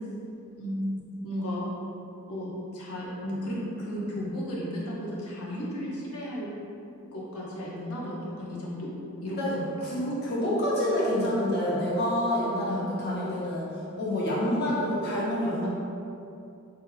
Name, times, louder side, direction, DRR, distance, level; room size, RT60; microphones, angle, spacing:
voice 1, 0.6-1.7 2.3-6.5 7.1-8.9 9.2-9.7 12.7-12.9 14.6-14.7, equal, 80° left, -6 dB, 1.1 m, -34 dB
voice 2, 9.8-15.7, left 1 dB, 50° left, -7 dB, 1.2 m, -28 dB
6.4 x 3.2 x 2.4 m, 2.7 s
head